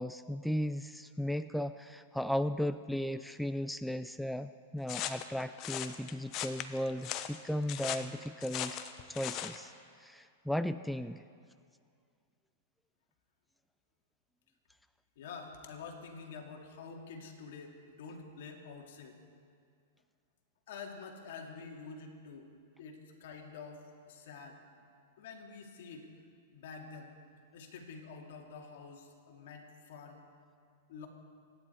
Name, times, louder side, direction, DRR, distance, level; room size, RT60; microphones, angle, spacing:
voice 1, 0.0-8.8 9.1-9.7 10.0-11.2, equal, ahead, 11 dB, 0.3 m, -36 dB
sound 1, 4.9-9.6, left 11 dB, 40° left, 0.8 m, -39 dB
voice 2, 15.2-19.2 20.7-22.5 22.8-24.6 25.2-26.1 26.5-27.1 27.5-30.2 30.9-31.1, left 5 dB, 65° left, 2 dB, 2.3 m, -48 dB
24.5 x 10.0 x 4.5 m, 2.2 s
hypercardioid pair, 130°, 0 cm